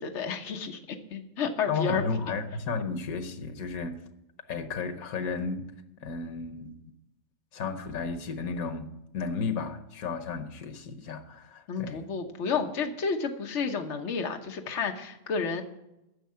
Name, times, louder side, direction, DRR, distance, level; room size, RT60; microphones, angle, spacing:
voice 1, 0.0-2.0 11.7-15.6, left 5 dB, 60° left, 4 dB, 1.3 m, -31 dB
voice 2, 1.7-4.0 4.5-5.7 6.0-6.8 7.5-12.1, left 4 dB, 90° left, 9 dB, 1.4 m, -33 dB
10.0 x 6.6 x 8.5 m, 0.89 s
omnidirectional pair, 1.4 m